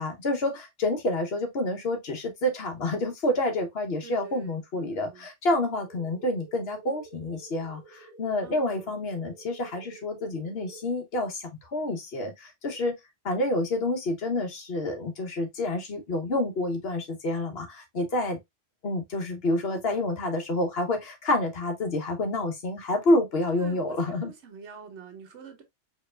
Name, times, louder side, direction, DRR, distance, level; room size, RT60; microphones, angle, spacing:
voice 1, 0.0-12.9 13.2-18.4 18.8-24.3, left 1 dB, 60° left, 1.2 m, -28 dB
voice 2, 4.0-5.3 8.4-9.0 23.6-25.6, right 5 dB, 75° right, 1.2 m, -46 dB
sound 1, 5.9-10.9, right 4 dB, 30° left, 1.4 m, -51 dB
4.8 x 3.1 x 2.3 m
omnidirectional pair, 1.2 m